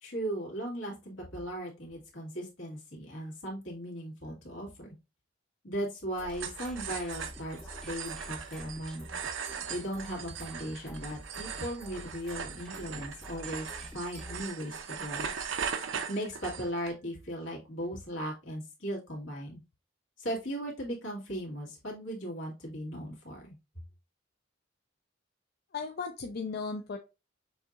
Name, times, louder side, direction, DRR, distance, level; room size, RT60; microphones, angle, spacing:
voice 1, 0.0-5.0 5.6-9.0 9.7-15.3 16.1-19.6 20.2-23.6, equal, 80° left, -3 dB, 2.2 m, -37 dB
sound 1, 6.1-14.5, equal, 5° left, 0.6 m, -48 dB
sound 2, 6.3-16.9, right 7 dB, 80° right, 0.6 m, -39 dB
voice 2, 25.7-27.0, left 4 dB, 55° left, 5 dB, 0.5 m, -36 dB
6.9 x 2.8 x 2.5 m, 0.27 s
head